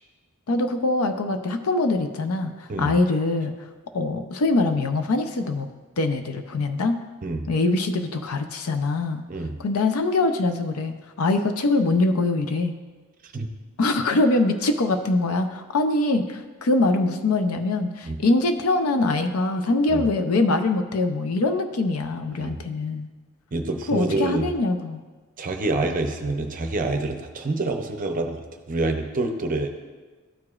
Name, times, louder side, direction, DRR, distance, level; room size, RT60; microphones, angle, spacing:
voice 1, 0.5-3.5 3.9-5.7 6.0-7.0 7.5-9.2 9.6-12.7 13.8-23.1 23.9-25.0, left 2 dB, 80° left, 8 dB, 0.5 m, -23 dB
voice 2, 22.3-22.7 23.5-24.5 25.4-29.7, right 2 dB, 40° right, 5 dB, 0.6 m, -27 dB
13.0 x 4.8 x 2.4 m, 1.3 s
head